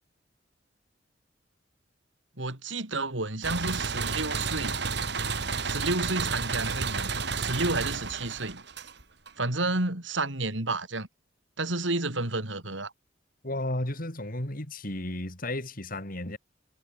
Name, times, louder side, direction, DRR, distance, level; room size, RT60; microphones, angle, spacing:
voice 1, 2.4-4.8 5.6-8.6 9.4-11.1 11.6-12.9, right 2 dB, 80° right, 4.1 m, -31 dB
sound 1, 3.4-9.3, right 5 dB, 65° right, 4.3 m, -31 dB
voice 2, 13.4-16.4, left 1 dB, 50° left, 4.5 m, -33 dB
head